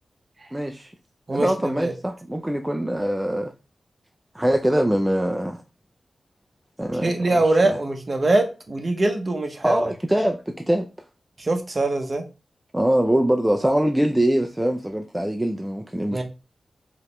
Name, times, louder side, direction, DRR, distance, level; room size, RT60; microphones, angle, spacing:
voice 1, 0.5-0.9 1.3-3.5 4.3-5.6 6.8-7.8 9.6-10.9 12.7-16.2, right 1 dB, 10° right, 3 dB, 0.3 m, -23 dB
voice 2, 1.3-1.9 7.0-9.9 11.4-12.2 16.1-16.2, right 2 dB, 35° right, 5 dB, 0.7 m, -23 dB
4.9 x 2.9 x 3.2 m, 0.31 s
wide cardioid pair, 145°, 0 cm